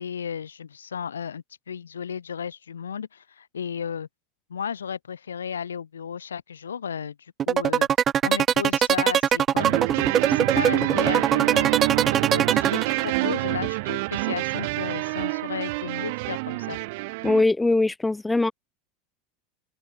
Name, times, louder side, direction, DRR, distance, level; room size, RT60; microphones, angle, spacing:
voice 1, 0.0-4.1 4.5-7.9 8.2-9.8 10.3-11.7 12.2-16.8, left 7 dB, 85° left, 5.2 m, -34 dB
sound 1, 7.4-13.3, right 9 dB, 35° right, 2.4 m, -21 dB
sound 2, 9.6-17.4, right 25 dB, 65° right, 2.4 m, -27 dB
voice 2, 17.2-18.5, left 2 dB, 10° left, 1.1 m, -21 dB
open air
hypercardioid pair, 85°, 0 cm